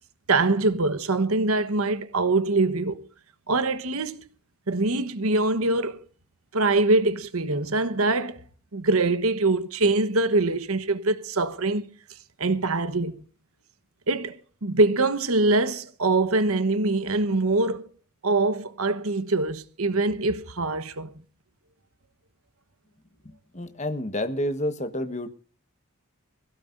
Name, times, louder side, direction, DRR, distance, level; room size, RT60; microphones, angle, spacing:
voice 1, 0.3-3.0 3.5-4.2 4.7-6.0 6.5-8.4 8.7-11.8 12.4-13.2 14.1-17.8 18.2-21.1, right 2 dB, 80° right, 1.2 m, -23 dB
voice 2, 23.2-25.3, left 1 dB, 30° left, 1.3 m, -29 dB
22.5 x 16.5 x 2.6 m
head